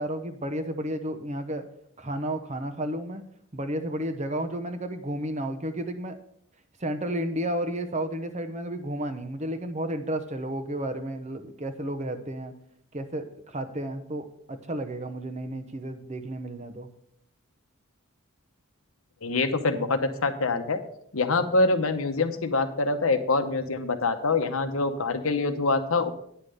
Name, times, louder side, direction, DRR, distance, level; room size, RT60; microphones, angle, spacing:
voice 1, 0.0-1.7 2.0-3.2 3.5-6.2 6.8-12.5 12.9-16.9 21.4-21.5, right 1 dB, 35° right, 9 dB, 0.8 m, -32 dB
voice 2, 19.2-20.8 21.1-26.1, left 3 dB, 85° left, 8 dB, 1.0 m, -25 dB
9.6 x 5.7 x 6.5 m, 0.71 s
head